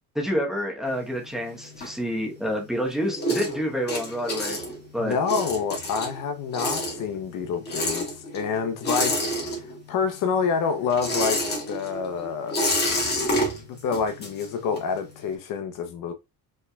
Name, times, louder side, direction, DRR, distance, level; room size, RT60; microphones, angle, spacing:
voice 1, 0.1-4.6 4.9-5.2, equal, ahead, 1.0 m, -28 dB
sound 1, 0.9-2.5 2.8-10.0 10.3-15.0, equal, 25° left, 1.7 m, -29 dB
voice 2, 5.0-8.1 8.3-9.3 9.9-11.4 11.7-12.6 13.4-16.1, left 6 dB, 60° left, 0.8 m, -27 dB
5.4 x 3.3 x 2.3 m
cardioid pair, 150°, 37 cm